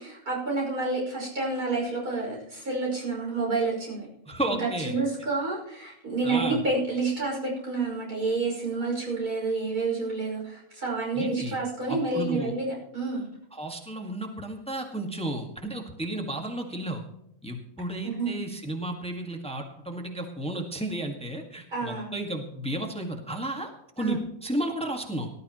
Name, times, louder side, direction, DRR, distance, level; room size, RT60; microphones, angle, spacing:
voice 1, 0.0-4.1 4.6-13.3 18.0-18.4 21.7-22.2 24.0-24.2, right 3 dB, 85° right, -2 dB, 6.1 m, -29 dB
voice 2, 4.3-5.0 6.2-6.6 11.1-11.6 11.9-12.5 13.5-17.0 17.4-23.7 24.0-25.3, right 1 dB, 5° left, 3 dB, 1.6 m, -33 dB
18.5 x 12.5 x 3.0 m, 0.79 s
omnidirectional pair, 1.6 m